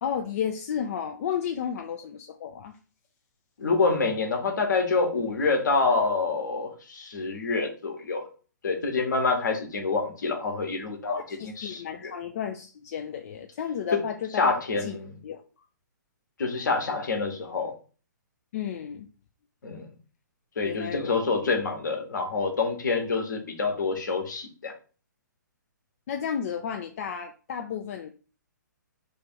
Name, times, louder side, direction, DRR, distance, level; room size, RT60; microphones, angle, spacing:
voice 1, 0.0-2.8 11.4-14.5 14.8-15.0 15.2-15.4 18.5-19.1 20.6-21.2 26.1-28.1, left 8 dB, 50° left, 4 dB, 0.3 m, -32 dB
voice 2, 3.6-8.3 8.6-12.1 13.9-14.0 14.4-15.1 16.4-17.7 19.6-19.9 20.6-24.7, left 4 dB, 70° left, 3 dB, 1.0 m, -27 dB
3.0 x 2.5 x 4.2 m, 0.37 s
figure-of-eight pair, 130°, 10 cm